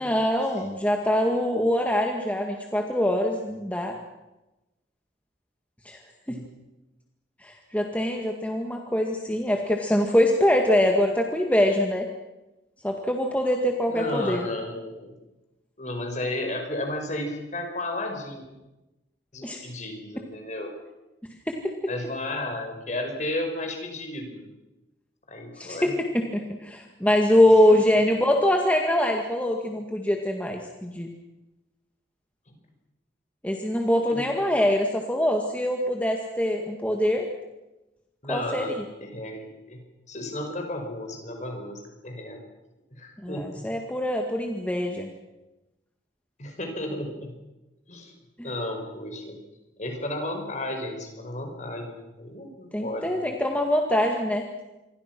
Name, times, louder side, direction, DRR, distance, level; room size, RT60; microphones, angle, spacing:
voice 1, 0.0-3.9 5.9-6.0 6.3-6.4 7.4-12.1 12.8-14.5 19.4-19.6 21.5-21.7 25.6-31.1 33.4-37.3 38.3-38.7 43.2-45.1 48.4-48.5 52.7-54.4, left 1 dB, 10° left, 2 dB, 1.9 m, -23 dB
voice 2, 13.9-15.1 15.8-18.4 19.3-20.7 21.9-24.4 25.3-26.0 27.7-27.8 32.5-32.6 33.9-34.3 38.2-38.7 39.0-42.4 43.0-43.6 46.4-47.4 47.9-48.2 48.4-49.4 49.8-53.3, left 1 dB, 40° left, 4 dB, 5.4 m, -33 dB
27.5 x 24.0 x 6.1 m, 0.99 s
head